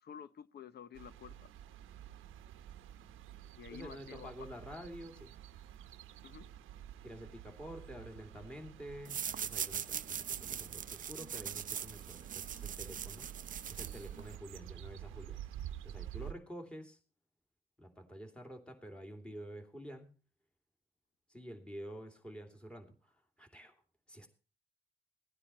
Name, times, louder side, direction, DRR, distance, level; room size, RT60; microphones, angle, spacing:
voice 1, 0.0-1.5 3.6-4.6 6.2-6.5, left 8 dB, 55° left, 0.9 m, -51 dB
sound 1, 0.9-16.3, right 11 dB, 90° right, 0.9 m, -50 dB
voice 2, 3.7-5.4 7.0-13.3 13.7-15.4 15.8-17.0 17.8-20.2 21.3-23.7 24.1-24.3, equal, 5° left, 2.9 m, -49 dB
sound 2, 9.0-14.4, right 8 dB, 40° right, 0.6 m, -41 dB
16.5 x 9.8 x 4.3 m
cardioid pair, 90°, 20 cm